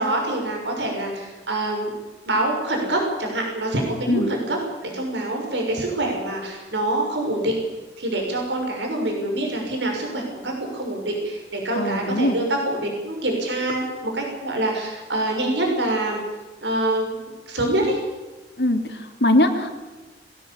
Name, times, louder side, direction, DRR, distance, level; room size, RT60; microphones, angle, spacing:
voice 1, 0.0-1.9 2.2-7.5 8.0-16.2 16.6-17.2 17.5-18.0, right 1 dB, 90° right, 1 dB, 6.3 m, -25 dB
voice 2, 11.8-12.3 18.6-19.7, left 1 dB, 70° left, 5 dB, 3.0 m, -21 dB
21.5 x 17.0 x 8.7 m, 1.2 s
head